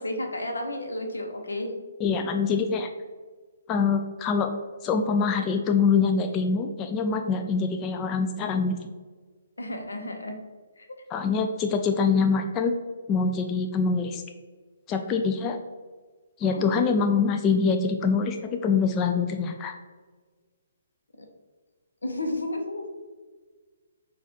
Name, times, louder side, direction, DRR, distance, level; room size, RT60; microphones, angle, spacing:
voice 1, 0.0-1.7 9.6-10.4 10.8-10.9 16.4-16.9 21.2-21.3 22.0-22.9, left 1 dB, 85° left, 3 dB, 0.8 m, -32 dB
voice 2, 2.0-2.9 3.7-4.5 4.8-8.8 11.1-12.7 13.1-14.2 14.9-15.6 16.4-19.8, left 5 dB, 25° left, 5 dB, 0.3 m, -24 dB
6.0 x 2.4 x 2.8 m, 1.4 s
figure-of-eight pair, 135°, 0 cm